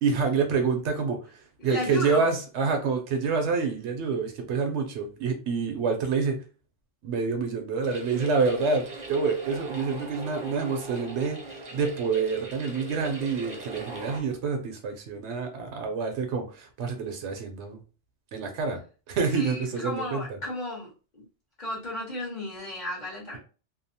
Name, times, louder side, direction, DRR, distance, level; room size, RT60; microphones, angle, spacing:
voice 1, 0.0-6.4 7.0-17.8 18.3-18.8 19.1-20.4, right 5 dB, 80° right, 5 dB, 0.9 m, -27 dB
voice 2, 1.6-2.2 19.3-20.9 21.1-21.2 21.6-23.4, left 1 dB, 40° left, -6 dB, 1.2 m, -34 dB
sound 1, 7.8-14.2, right 2 dB, 45° right, 0.7 m, -40 dB
2.7 x 2.0 x 2.7 m, 0.36 s
omnidirectional pair, 1.2 m